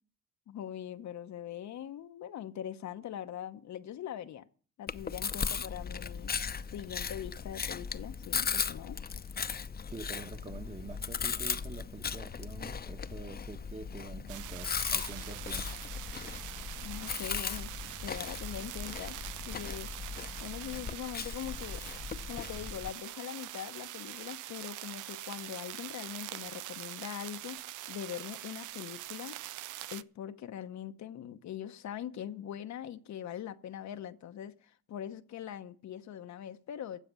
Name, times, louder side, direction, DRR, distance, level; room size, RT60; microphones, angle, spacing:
voice 1, 0.5-4.5 4.8-6.3 6.7-9.0 16.8-17.7 18.0-19.2 19.5-19.9 20.4-21.8 22.3-27.6 27.9-29.4 29.9-37.0, left 10 dB, 65° left, 0.9 m, -42 dB
Chewing mastication, 4.9-22.9, left 6 dB, 30° left, 0.8 m, -37 dB
voice 2, 9.9-15.7, right 4 dB, 25° right, 1.3 m, -46 dB
sound 1, 14.3-30.0, right 15 dB, 80° right, 0.6 m, -44 dB
15.5 x 5.8 x 9.7 m
cardioid pair, 90°, 30 cm